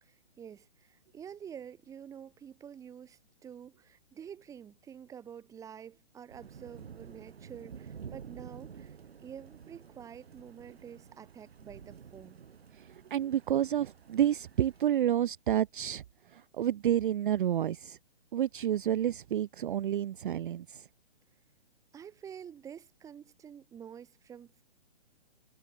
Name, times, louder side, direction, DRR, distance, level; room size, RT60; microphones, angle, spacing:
voice 1, 0.0-9.0 9.2-12.4 21.9-24.6, right 8 dB, 10° right, 2.2 m, -48 dB
sound 1, 6.3-14.8, right 7 dB, 75° right, 3.7 m, -50 dB
voice 2, 12.7-18.0 18.3-20.9, right 11 dB, 55° right, 0.6 m, -30 dB
hypercardioid pair, 155°, 31 cm